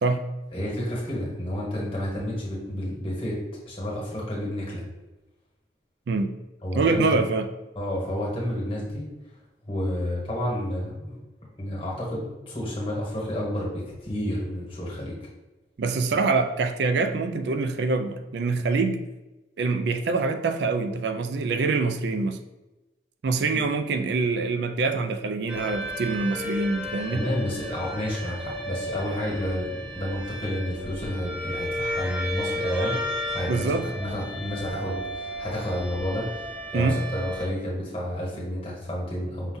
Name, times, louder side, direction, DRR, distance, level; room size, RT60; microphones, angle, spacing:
voice 1, 0.5-3.4 3.7-4.8 6.6-7.2 7.7-9.1 9.7-11.2 11.6-15.2 23.5-23.6 27.1-33.0 33.3-39.6, equal, 30° left, -4 dB, 1.4 m, -30 dB
voice 2, 6.7-7.5 15.8-19.0 19.6-22.4 23.2-27.2 33.5-33.9 36.7-37.0, right 3 dB, 75° right, 8 dB, 0.4 m, -25 dB
sound 1, 25.5-37.5, equal, 5° right, 0.4 m, -33 dB
5.4 x 2.3 x 3.8 m, 1.1 s
head